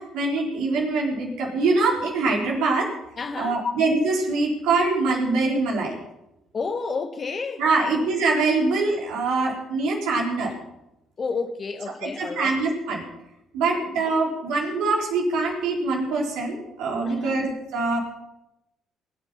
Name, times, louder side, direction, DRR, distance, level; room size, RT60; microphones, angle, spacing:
voice 1, 0.0-2.9 3.4-6.0 7.6-10.5 11.9-13.0 13.5-18.0, right 3 dB, 70° right, 4.4 m, -24 dB
voice 2, 3.2-3.7 6.5-7.9 11.2-12.6 13.9-14.0 17.0-17.4, left 4 dB, 40° left, 1.6 m, -30 dB
22.0 x 8.9 x 5.8 m
hypercardioid pair, 50°, 0 cm